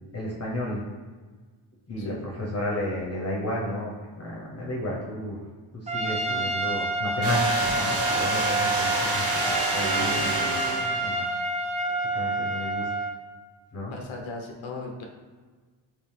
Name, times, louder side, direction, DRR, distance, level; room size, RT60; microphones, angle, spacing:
voice 1, 0.1-0.8 1.9-5.4 5.7-11.3 12.1-12.9 13.7-13.9, left 1 dB, 30° left, -5 dB, 0.8 m, -32 dB
Trumpet, 5.9-13.2, right 2 dB, 15° right, 0.3 m, -28 dB
sound 1, 7.2-11.2, right 2 dB, 85° right, 1.1 m, -28 dB
voice 2, 13.9-15.0, left 3 dB, 75° left, 1 dB, 0.6 m, -37 dB
3.0 x 2.8 x 3.3 m, 1.4 s
cardioid pair, 60°, 48 cm